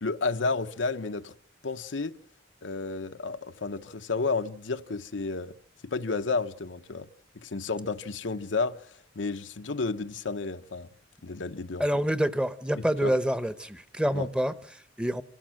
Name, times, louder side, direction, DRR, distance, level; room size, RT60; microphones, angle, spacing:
voice 1, 0.0-1.3 1.6-2.2 2.6-5.5 5.8-7.1 7.4-8.9 9.2-10.9 11.2-12.0 12.8-13.1 14.1-14.3, left 4 dB, 85° left, 0.9 m, -31 dB
voice 2, 11.8-15.2, right 1 dB, 5° right, 0.8 m, -27 dB
26.0 x 16.5 x 7.6 m
head